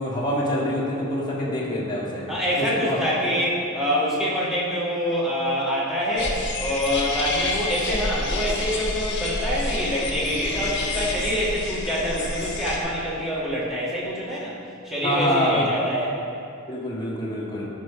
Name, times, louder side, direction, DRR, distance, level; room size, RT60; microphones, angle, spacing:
voice 1, 0.0-2.3 2.6-3.0 15.0-15.7 16.7-17.7, left 1 dB, 20° left, -5 dB, 1.6 m, -26 dB
voice 2, 2.3-14.6 14.8-16.1, equal, ahead, -8 dB, 2.3 m, -25 dB
sound 1, 6.2-12.8, left 2 dB, 55° left, 1.5 m, -29 dB
13.0 x 5.3 x 5.1 m, 2.5 s
head